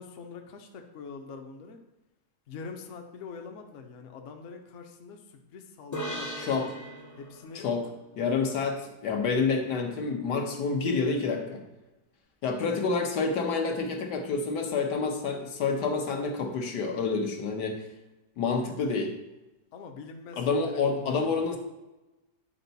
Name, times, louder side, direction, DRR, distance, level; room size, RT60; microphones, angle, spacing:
voice 1, 0.0-1.8 2.5-6.6 7.2-7.7 19.7-21.5, left 5 dB, 55° left, 4 dB, 0.9 m, -44 dB
sound 1, 5.9-9.4, equal, 25° left, 0.4 m, -40 dB
voice 2, 6.4-6.7 7.5-7.9 8.2-11.6 12.4-17.8 18.4-19.1 20.4-21.6, left 4 dB, 80° left, 3 dB, 1.6 m, -28 dB
9.1 x 4.5 x 4.0 m, 1.0 s
omnidirectional pair, 1.8 m